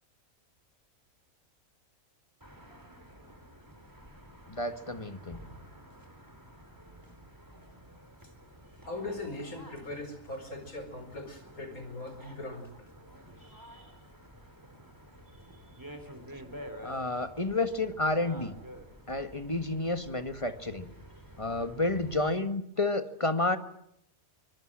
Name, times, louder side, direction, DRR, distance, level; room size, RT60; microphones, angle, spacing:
sound 1, 2.4-22.4, equal, 15° right, 3.4 m, -50 dB
voice 1, 4.5-5.4 16.8-18.6 19.1-20.9 21.4-23.6, left 2 dB, 25° left, 9 dB, 1.6 m, -30 dB
voice 2, 8.9-12.7 13.4-13.9 15.4-15.5, left 2 dB, 90° left, 8 dB, 5.2 m, -40 dB
24.5 x 21.5 x 7.5 m, 0.74 s
omnidirectional pair, 1.5 m